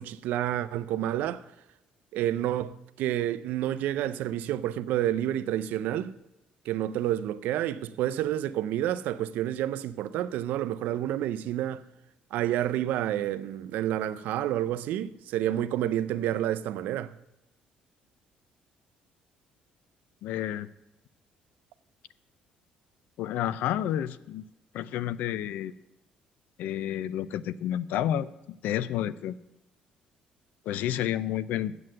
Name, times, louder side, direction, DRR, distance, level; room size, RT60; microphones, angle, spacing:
voice 1, 0.0-1.4 2.1-6.1 6.7-11.8 12.3-17.1, right 12 dB, 80° right, 0.5 m, -29 dB
voice 2, 20.2-20.7 23.2-24.4 24.7-25.7 26.6-29.4 30.7-31.7, left 11 dB, 80° left, 0.4 m, -30 dB
7.8 x 7.6 x 7.6 m
cardioid pair, 110°, 3 cm